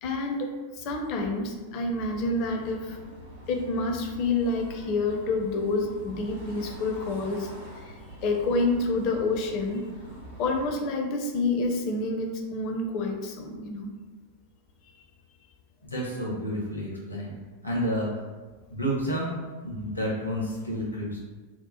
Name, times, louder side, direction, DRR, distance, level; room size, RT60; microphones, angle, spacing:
voice 1, 0.0-3.0 3.5-7.5 7.8-9.9 10.4-13.9, left 3 dB, 40° left, 2 dB, 0.5 m, -28 dB
sound 1, 2.0-10.7, right 1 dB, 60° right, 0.8 m, -45 dB
voice 2, 15.8-17.3 17.6-18.1 18.7-21.2, equal, 80° left, -3 dB, 0.8 m, -30 dB
2.8 x 2.0 x 3.9 m, 1.3 s
figure-of-eight pair, 90°, 0 cm